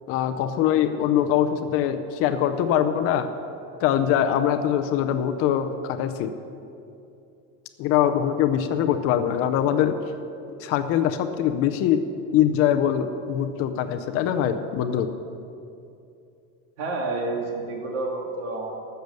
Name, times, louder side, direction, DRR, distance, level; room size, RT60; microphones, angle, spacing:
voice 1, 0.1-3.3 3.8-6.3 7.8-10.0 10.6-12.1 12.3-15.1, left 10 dB, 40° left, 8 dB, 0.6 m, -23 dB
voice 2, 16.8-18.7, right 2 dB, 80° right, 0 dB, 2.5 m, -29 dB
14.5 x 6.8 x 6.7 m, 2.6 s
cardioid pair, 165°, 38 cm